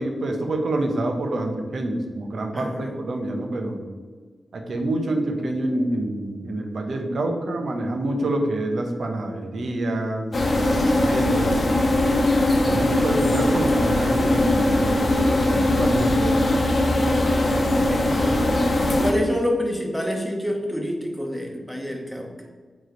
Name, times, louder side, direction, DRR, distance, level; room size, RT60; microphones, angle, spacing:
voice 1, 0.0-3.8 4.5-11.7 12.6-16.4, right 1 dB, 65° right, 3 dB, 1.0 m, -27 dB
voice 2, 2.5-2.9 17.8-22.4, equal, ahead, 1 dB, 1.2 m, -28 dB
sound 1, 10.3-19.1, left 1 dB, 45° left, 1.0 m, -20 dB
8.7 x 3.3 x 4.0 m, 1.5 s
wide cardioid pair, 110°, 0 cm